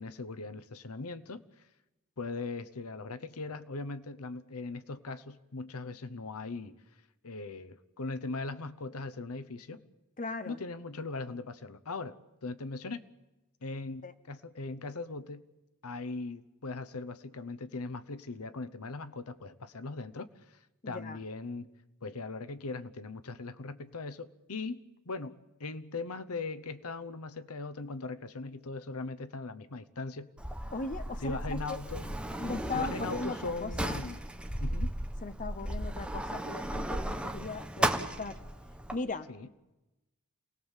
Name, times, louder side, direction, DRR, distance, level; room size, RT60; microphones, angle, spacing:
voice 1, 0.0-1.4 2.2-6.8 7.2-9.9 10.4-13.0 13.6-15.4 15.8-20.6 20.9-21.7 22.0-30.3 31.2-32.2 32.7-34.2 34.6-34.9 39.3-39.5, left 3 dB, 75° left, 14 dB, 0.9 m, -39 dB
voice 2, 10.2-10.6 14.0-14.1 20.8-21.2 30.7-31.8 32.4-34.0 35.2-38.4 38.9-39.3, left 3 dB, 35° left, 11 dB, 0.9 m, -38 dB
Sliding door, 30.4-38.9, right 1 dB, 5° right, 1.3 m, -35 dB
28.0 x 18.5 x 7.4 m, 1.0 s
head